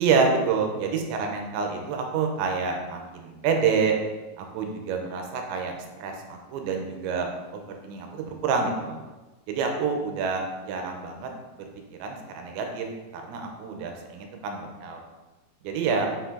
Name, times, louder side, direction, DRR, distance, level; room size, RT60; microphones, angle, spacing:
voice 1, 0.0-4.0 4.4-5.7 6.0-9.0 9.5-11.3 11.6-11.7 12.0-12.9 13.1-15.0 15.6-16.1, right 5 dB, 90° right, 3 dB, 3.0 m, -27 dB
7.2 x 4.6 x 3.8 m, 1.2 s
omnidirectional pair, 5.2 m